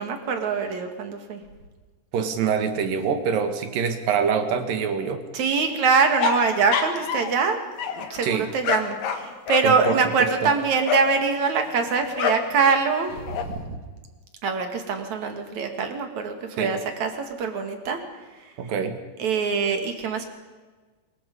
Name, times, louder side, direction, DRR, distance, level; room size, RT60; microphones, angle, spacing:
voice 1, 0.0-1.4 5.3-7.6 7.9-13.8 14.4-17.1 17.4-18.0 19.2-20.2, right 5 dB, 55° right, 5 dB, 3.3 m, -24 dB
voice 2, 2.1-5.2 8.2-8.5 9.6-10.5 16.6-16.7 18.6-19.0, right 6 dB, 70° right, 7 dB, 3.4 m, -25 dB
sound 1, 6.2-7.4 7.8-11.2 12.1-12.5 12.9-13.4, left 6 dB, 70° left, 3.3 m, -27 dB
25.0 x 22.5 x 5.5 m, 1.3 s
omnidirectional pair, 4.2 m